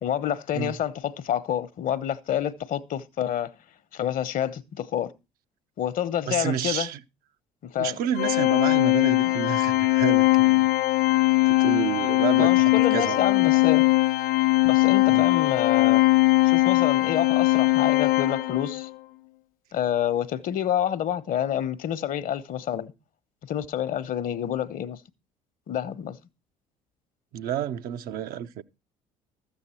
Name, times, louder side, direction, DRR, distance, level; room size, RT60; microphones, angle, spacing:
voice 1, 0.0-3.5 3.9-5.1 5.8-6.9 7.6-8.0 9.2-9.3 12.4-13.8 14.6-16.0 16.4-18.9 19.7-22.9 23.5-25.0 25.7-26.2, left 10 dB, 50° left, 1.1 m, -28 dB
voice 2, 6.3-7.0 7.8-10.7 11.4-13.2 15.1-15.3 27.3-28.6, right 10 dB, 55° right, 0.8 m, -30 dB
Organ, 8.2-18.9, left 21 dB, 75° left, 0.6 m, -20 dB
13.5 x 8.0 x 4.4 m
hypercardioid pair, 60°, 18 cm